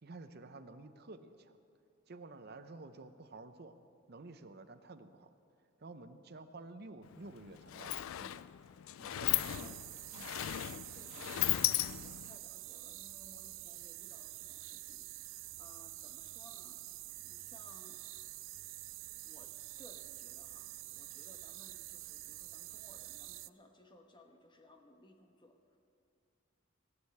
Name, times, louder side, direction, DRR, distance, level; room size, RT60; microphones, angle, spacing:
voice 1, 0.0-1.6 2.1-3.8 4.1-5.3 5.8-8.5 9.0-9.8 10.1-10.3, right 3 dB, 50° right, 9 dB, 0.7 m, -51 dB
Sliding door, 7.0-7.2 7.4-12.4, left 15 dB, 85° left, 0.3 m, -36 dB
voice 2, 9.1-9.8 10.6-18.3 19.2-25.8, left 1 dB, 25° left, 5 dB, 1.1 m, -61 dB
sound 1, 9.4-23.5, right 19 dB, 70° right, 0.3 m, -48 dB
17.5 x 6.6 x 9.5 m, 2.5 s
head